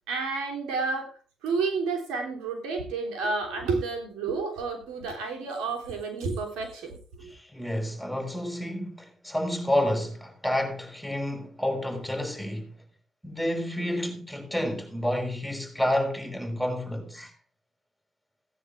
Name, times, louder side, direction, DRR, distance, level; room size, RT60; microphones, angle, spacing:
voice 1, 0.1-1.1 1.4-7.3, right 4 dB, 90° right, 3.4 m, -30 dB
voice 2, 7.3-12.7 13.2-17.3, left 1 dB, ahead, 5.3 m, -29 dB
17.0 x 9.8 x 3.5 m
supercardioid pair, 60°, 0 cm